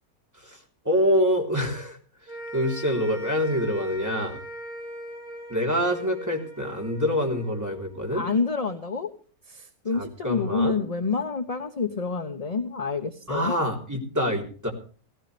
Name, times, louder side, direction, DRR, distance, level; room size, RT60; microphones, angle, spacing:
voice 1, 0.8-2.0 2.5-4.4 5.5-8.2 9.9-10.8 13.3-14.7, equal, 10° right, 0 dB, 3.7 m, -26 dB
sound 1, 2.3-8.7, right 2 dB, 40° right, 6.3 m, -40 dB
voice 2, 8.1-9.1 9.5-13.5, left 4 dB, 30° left, 8 dB, 1.0 m, -28 dB
17.0 x 16.0 x 3.4 m, 0.41 s
omnidirectional pair, 1.5 m